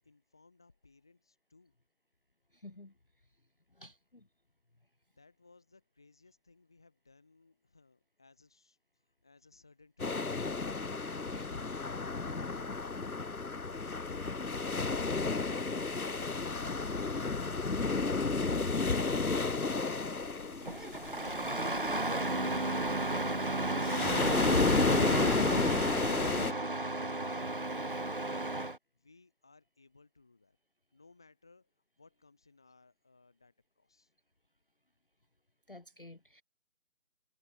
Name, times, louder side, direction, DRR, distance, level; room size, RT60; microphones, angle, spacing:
voice 1, 0.0-1.7 5.1-8.8 9.1-10.4 28.9-30.6 30.9-31.7 32.0-34.1, left 3 dB, 5° left, 1.3 m, -62 dB
voice 2, 2.5-2.9 3.8-4.2 11.3-11.4 35.7-36.4, left 2 dB, 40° left, 0.7 m, -52 dB
sound 1, 10.0-26.5, left 4 dB, 90° left, 1.6 m, -32 dB
Engine starting, 20.6-28.8, right 2 dB, 40° right, 0.7 m, -33 dB
figure-of-eight pair, 170°, 43 cm